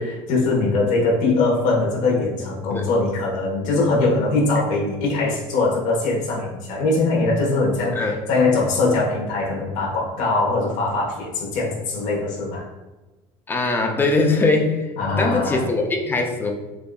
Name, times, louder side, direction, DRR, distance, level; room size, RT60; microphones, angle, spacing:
voice 1, 0.0-12.6 15.0-15.7, left 3 dB, 65° left, -2 dB, 1.4 m, -21 dB
voice 2, 13.5-16.5, left 3 dB, 15° left, 3 dB, 0.5 m, -21 dB
6.6 x 2.6 x 2.3 m, 1.1 s
cardioid pair, 135°, 13 cm